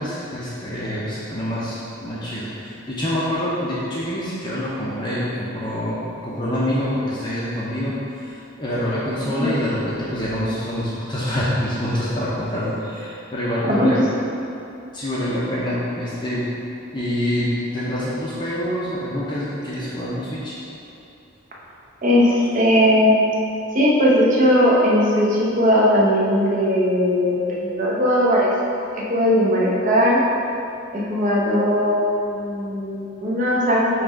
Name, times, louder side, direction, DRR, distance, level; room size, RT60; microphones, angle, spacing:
voice 1, 0.0-6.0 6.2-14.0 14.9-16.4 16.9-20.5, equal, 20° left, -8 dB, 0.7 m, -26 dB
voice 2, 13.7-14.0 22.0-23.1 23.7-28.5 28.9-30.2 30.9-32.0 32.3-33.9, equal, 35° right, -5 dB, 0.9 m, -18 dB
5.9 x 3.1 x 5.1 m, 2.7 s
head